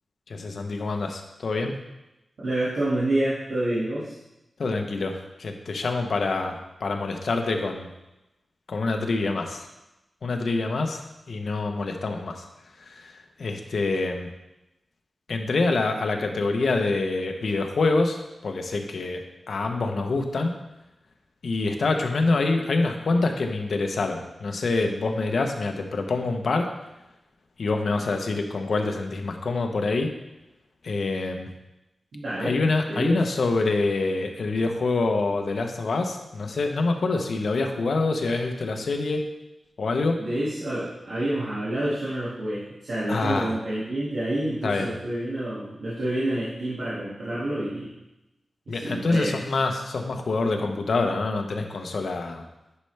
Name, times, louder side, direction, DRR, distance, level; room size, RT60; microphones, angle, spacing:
voice 1, 0.3-1.8 4.6-7.9 8.7-9.7 10.2-12.4 12.8-14.3 15.3-19.2 19.5-20.5 21.4-26.7 27.6-30.1 30.8-31.5 32.4-39.2 39.8-40.2 43.1-43.5 44.6-44.9 48.7-52.4, left 3 dB, 65° left, 4 dB, 0.8 m, -26 dB
voice 2, 2.4-4.1 32.1-32.6 32.9-33.2 40.2-47.9 48.7-49.4, right 1 dB, 75° right, -11 dB, 2.1 m, -28 dB
9.7 x 5.5 x 3.4 m, 0.96 s
wide cardioid pair, 145°, 0 cm